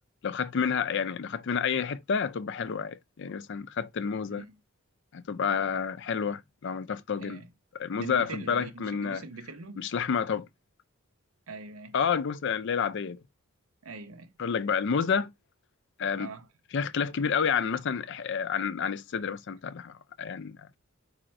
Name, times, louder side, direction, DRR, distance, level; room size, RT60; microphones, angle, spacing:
voice 1, 0.2-4.4 5.1-7.4 7.8-9.2 9.8-10.5 11.9-13.2 14.4-15.3 16.0-16.3 16.7-20.7, left 6 dB, 55° left, 0.4 m, -29 dB
voice 2, 7.1-7.5 8.0-9.9 11.5-12.0 13.8-14.3 16.2-16.5, right 3 dB, 85° right, 0.8 m, -43 dB
4.9 x 2.6 x 4.2 m
head